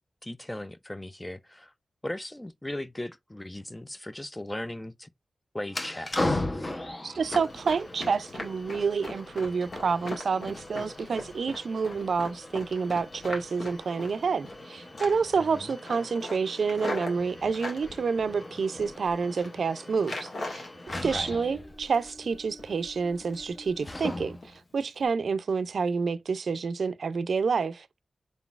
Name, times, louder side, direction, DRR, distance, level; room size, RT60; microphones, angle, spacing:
voice 1, 0.2-1.7 2.0-5.1 5.5-6.5 15.4-15.7 21.1-21.3, left 1 dB, 15° left, 0.3 m, -38 dB
sound 1, 5.7-24.6, left 1 dB, 35° left, 0.7 m, -39 dB
voice 2, 7.0-20.6 21.0-24.4 24.7-27.9, right 5 dB, 80° right, 0.4 m, -28 dB
Run, 7.2-14.6 14.9-15.4 15.7-17.8 18.4-19.0 19.2-19.5 20.0-21.1 21.4-22.2 22.6-22.8 23.2-23.5 23.8-24.0 24.4-24.6 24.9-25.1, left 2 dB, 70° left, 1.6 m, -39 dB
3.9 x 3.8 x 2.3 m
cardioid pair, 65°, 0 cm